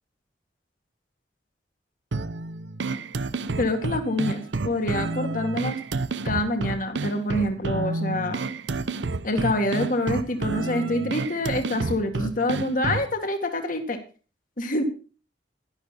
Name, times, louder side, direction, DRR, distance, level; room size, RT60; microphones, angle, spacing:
sound 1, 2.1-13.1, right 3 dB, 90° right, 0.8 m, -30 dB
voice 1, 3.6-5.8 6.2-8.4 9.2-14.0 14.6-14.8, left 1 dB, 50° left, 6 dB, 1.9 m, -26 dB
11.5 x 11.5 x 4.2 m, 0.36 s
head